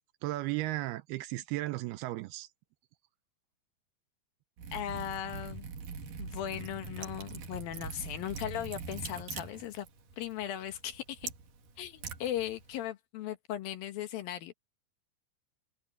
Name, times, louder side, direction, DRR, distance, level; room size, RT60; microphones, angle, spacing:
voice 1, 0.2-2.5, right 17 dB, 80° right, 2.4 m, -35 dB
Liquid, 4.6-12.9, right 5 dB, 55° right, 3.7 m, -43 dB
voice 2, 4.7-5.7 6.2-9.9 10.2-11.3 11.8-14.5, left 11 dB, 70° left, 2.7 m, -38 dB
omnidirectional pair, 4.8 m